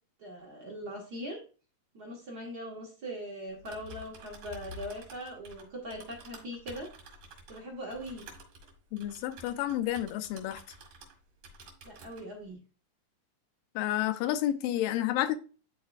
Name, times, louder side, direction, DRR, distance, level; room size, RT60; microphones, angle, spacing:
voice 1, 0.2-1.4 1.9-6.9 7.5-8.3 11.8-12.6, equal, 45° right, 1.3 m, -41 dB
Typing, 3.5-11.2 11.4-12.3, right 1 dB, 70° right, 3.3 m, -50 dB
voice 2, 8.9-10.6 13.8-15.4, left 13 dB, 80° left, 2.3 m, -30 dB
11.5 x 4.2 x 2.4 m
omnidirectional pair, 4.0 m